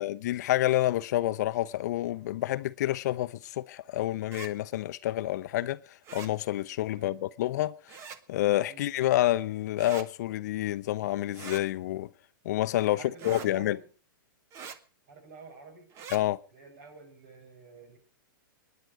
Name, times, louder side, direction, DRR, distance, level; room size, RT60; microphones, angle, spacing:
voice 1, 0.0-12.1 12.4-13.8 16.1-16.4, left 14 dB, 50° left, 0.7 m, -29 dB
sound 1, 4.2-4.5 6.0-6.3 7.9-8.2 9.8-10.1 11.3-11.6 13.2-13.5 14.5-14.8 15.9-16.2, right 7 dB, 25° right, 1.1 m, -43 dB
voice 2, 12.9-13.9 15.1-15.9 16.5-18.0, right 4 dB, 55° right, 7.5 m, -48 dB
25.5 x 10.5 x 4.8 m
hypercardioid pair, 155°, 11 cm